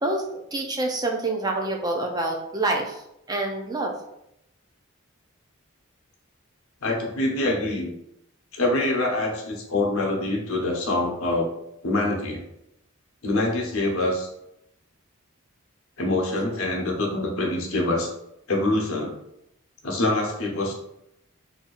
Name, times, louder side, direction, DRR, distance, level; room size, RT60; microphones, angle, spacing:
voice 1, 0.0-3.0 3.3-4.0, right 2 dB, 20° right, 1 dB, 0.5 m, -27 dB
voice 2, 6.8-7.9 8.5-11.5 11.8-12.4 13.2-14.3 16.0-18.1 18.5-19.1 19.8-20.7, left 2 dB, 80° left, 0 dB, 0.8 m, -25 dB
3.9 x 2.7 x 2.5 m, 0.81 s
head